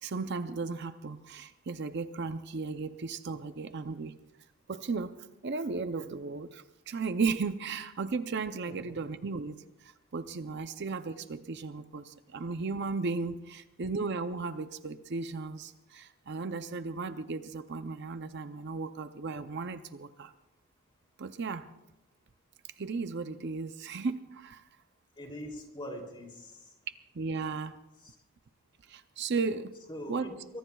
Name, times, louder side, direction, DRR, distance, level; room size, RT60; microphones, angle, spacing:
voice 1, 0.0-4.2 4.7-20.3 21.2-21.7 22.8-24.6 27.1-27.8 28.9-29.8 30.1-30.3, right 4 dB, 50° right, 10 dB, 0.5 m, -35 dB
voice 2, 25.2-26.6 28.0-28.1 29.9-30.6, equal, 20° left, 2 dB, 2.9 m, -43 dB
24.0 x 23.0 x 2.3 m, 0.95 s
head